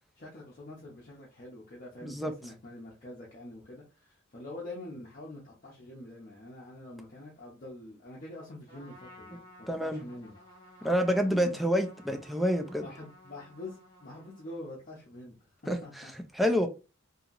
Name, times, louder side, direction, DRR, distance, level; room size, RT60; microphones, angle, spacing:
voice 1, 0.1-10.4 10.8-11.2 12.8-16.4, left 1 dB, 40° left, 0.7 m, -46 dB
Trumpet, 8.7-14.8, left 1 dB, 25° left, 1.4 m, -55 dB
voice 2, 9.7-10.0 10.8-12.8 15.7-15.8 16.4-16.7, equal, ahead, 0.3 m, -27 dB
2.8 x 2.7 x 2.5 m
head